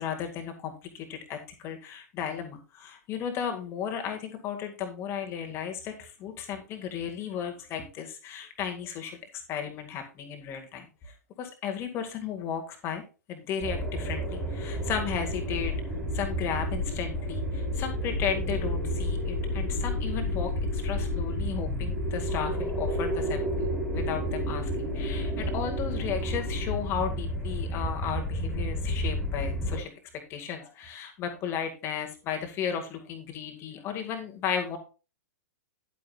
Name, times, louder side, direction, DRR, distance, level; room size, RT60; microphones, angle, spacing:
voice 1, 0.0-1.4 1.6-9.2 9.5-10.8 11.4-13.0 13.3-15.7 16.1-29.9 30.3-34.8, left 8 dB, 30° left, 4 dB, 2.0 m, -34 dB
sound 1, 13.6-29.8, equal, ahead, 4.3 m, -30 dB
11.0 x 9.2 x 2.4 m, 0.32 s
figure-of-eight pair, 105°, 9 cm